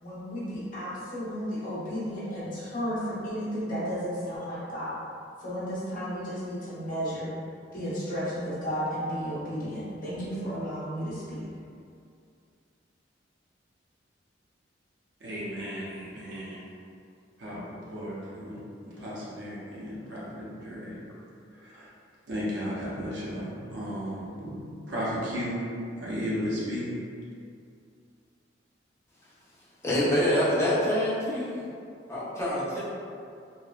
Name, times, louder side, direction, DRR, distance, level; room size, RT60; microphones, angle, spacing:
voice 1, 0.0-5.0 5.4-7.3 7.7-11.4, equal, 45° left, -10 dB, 0.8 m, -33 dB
voice 2, 15.2-16.6 17.4-21.0 21.5-21.9 22.3-24.6 24.9-25.6 26.0-26.9, equal, 70° right, -7 dB, 0.7 m, -35 dB
voice 3, 29.8-31.6 32.1-32.8, left 1 dB, 15° left, -9 dB, 0.5 m, -25 dB
3.0 x 2.0 x 2.3 m, 2.4 s
head